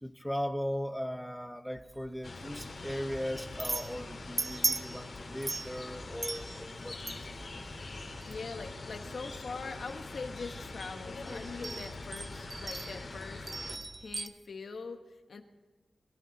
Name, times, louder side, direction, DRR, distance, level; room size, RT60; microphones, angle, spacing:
voice 1, 0.0-7.5, equal, ahead, 10 dB, 0.9 m, -38 dB
sound 1, 1.8-14.3, right 3 dB, 40° right, 0.7 m, -40 dB
sound 2, 2.2-13.8, left 3 dB, 65° left, 2.5 m, -43 dB
voice 2, 8.2-13.5 14.0-15.4, left 4 dB, 80° left, 5 dB, 1.4 m, -43 dB
23.5 x 12.0 x 4.1 m, 1.4 s
wide cardioid pair, 85°, 0 cm